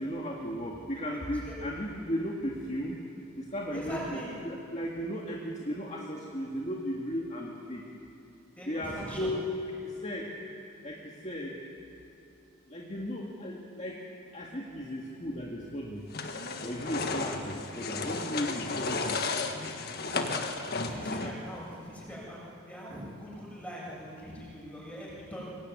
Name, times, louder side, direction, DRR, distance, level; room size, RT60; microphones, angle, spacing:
voice 1, 0.0-3.1 3.4-4.2 4.4-7.8 8.7-9.5 9.8-10.3 10.8-11.6 12.7-14.0 14.3-16.0 16.6-19.2, equal, 30° left, -2 dB, 2.1 m, -35 dB
voice 2, 3.7-4.4 8.6-9.4 20.8-25.4, equal, 5° left, -5 dB, 7.9 m, -42 dB
sound 1, 16.1-21.5, left 3 dB, 45° left, 1.6 m, -33 dB
24.5 x 21.0 x 9.6 m, 2.7 s
head